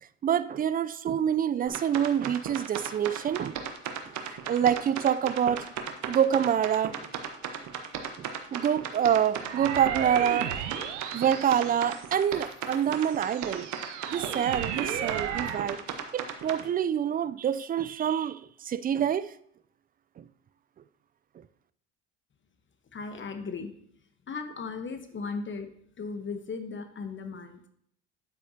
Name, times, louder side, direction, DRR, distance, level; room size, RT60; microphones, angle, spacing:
voice 1, 0.2-3.6 4.3-5.7 6.1-6.9 8.2-10.6 11.1-13.7 14.1-15.8 16.1-19.3 20.2-20.3, right 9 dB, 25° right, 0.4 m, -26 dB
sound 1, 1.7-16.6, right 8 dB, 55° right, 1.2 m, -36 dB
sound 2, 9.4-12.3 12.9-15.7, right 9 dB, 80° right, 0.8 m, -35 dB
voice 2, 22.9-23.7 24.3-25.7 26.0-27.6, left 4 dB, 35° left, 1.1 m, -36 dB
9.3 x 7.9 x 2.8 m
hypercardioid pair, 65°, 36 cm